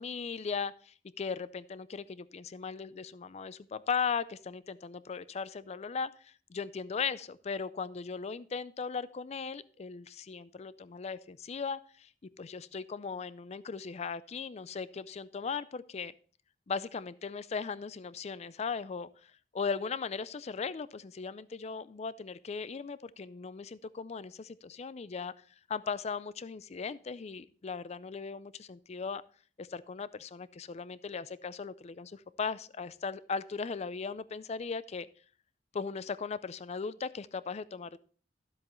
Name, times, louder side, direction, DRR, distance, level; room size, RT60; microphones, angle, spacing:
voice 1, 0.0-12.1 12.4-16.1 16.7-25.3 25.7-29.2 29.6-35.1 35.7-38.0, left 5 dB, 40° left, 17 dB, 0.4 m, -38 dB
12.5 x 7.7 x 3.1 m, 0.43 s
head